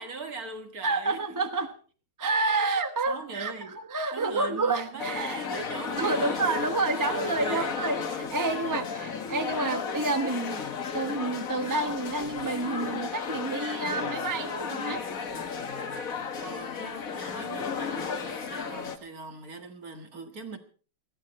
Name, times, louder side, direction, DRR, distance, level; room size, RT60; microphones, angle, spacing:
voice 1, 0.0-1.2 2.6-2.8 3.1-3.7 4.1-6.4 6.9-7.8 9.5-9.6 16.4-20.6, right 3 dB, 45° right, 2.0 m, -40 dB
voice 2, 0.8-1.7 2.2-5.6 6.0-10.6 10.9-15.0, right 3 dB, 15° right, 0.6 m, -29 dB
sound 1, 5.0-19.0, left 5 dB, 45° left, 1.6 m, -34 dB
20.0 x 14.0 x 4.2 m
omnidirectional pair, 2.3 m